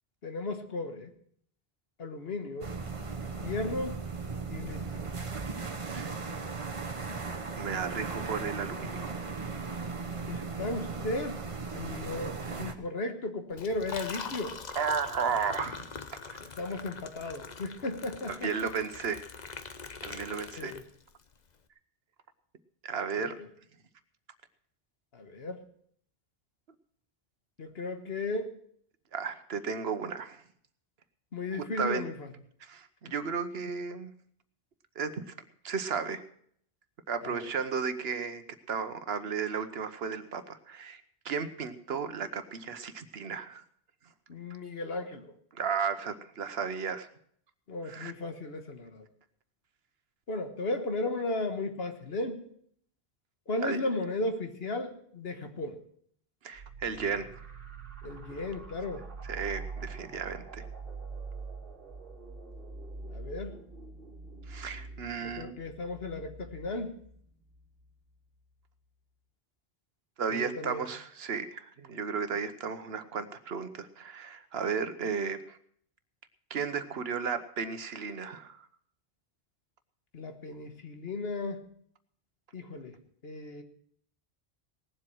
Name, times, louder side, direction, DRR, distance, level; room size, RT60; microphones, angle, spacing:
voice 1, 0.2-1.1 2.0-2.7 3.4-4.0 4.5-5.1 10.3-11.4 11.7-14.6 16.4-18.6 20.6-20.8 23.2-23.5 25.1-25.6 27.6-28.5 31.3-32.3 37.2-37.5 44.3-45.3 47.7-49.1 50.3-52.5 53.5-55.8 58.0-59.0 63.1-63.6 65.2-67.0 70.3-70.9 80.1-81.6 82.5-83.0 83.2-83.6, left 2 dB, 75° left, 6 dB, 1.6 m, -35 dB
sound 1, 2.6-12.7, right 4 dB, 35° right, 1.0 m, -37 dB
voice 2, 7.6-9.2 14.7-16.2 18.3-19.2 20.0-20.7 22.8-23.4 29.1-30.4 31.8-32.0 32.6-34.1 35.0-35.3 35.6-36.2 37.1-38.4 38.7-43.6 45.5-47.1 47.8-48.1 53.6-53.8 56.4-57.3 59.2-60.6 64.5-65.5 70.2-75.6 76.5-78.7, right 6 dB, 75° right, 11 dB, 1.2 m, -34 dB
Liquid, 13.5-21.2, left 5 dB, 45° left, 0.9 m, -43 dB
sound 2, 56.5-67.9, right 4 dB, 60° right, 1.8 m, -44 dB
18.5 x 7.7 x 6.2 m, 0.64 s
omnidirectional pair, 1.0 m